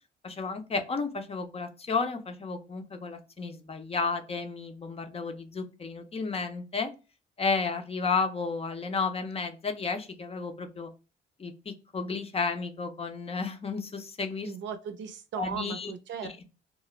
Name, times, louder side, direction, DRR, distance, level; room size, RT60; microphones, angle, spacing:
voice 1, 0.2-6.9 7.4-10.9 11.4-14.5 15.4-15.9, left 4 dB, 30° left, 6 dB, 0.5 m, -32 dB
voice 2, 14.4-16.5, right 7 dB, 65° right, 8 dB, 0.5 m, -37 dB
2.4 x 2.0 x 2.9 m, 0.31 s
cardioid pair, 90°, 20 cm